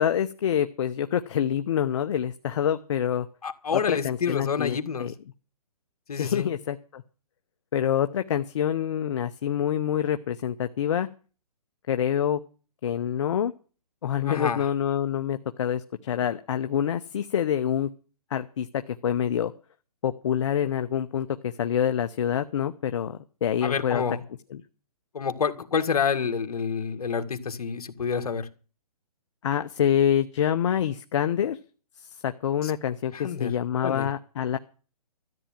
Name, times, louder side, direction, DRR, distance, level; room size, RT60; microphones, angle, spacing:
voice 1, 0.0-3.3 3.7-5.1 6.2-7.0 7.7-11.1 11.9-12.4 12.8-13.5 14.0-17.9 18.3-19.5 20.0-24.0 24.5-24.6 29.4-31.6 32.0-34.6, left 9 dB, 50° left, 9 dB, 0.8 m, -26 dB
voice 2, 3.4-5.1 6.1-6.5 14.2-14.6 23.6-24.2 25.1-28.5 32.6-32.7 33.1-33.5 33.8-34.1, left 6 dB, 70° left, 7 dB, 1.9 m, -28 dB
13.5 x 8.7 x 7.2 m, 0.37 s
hypercardioid pair, 155°, 20 cm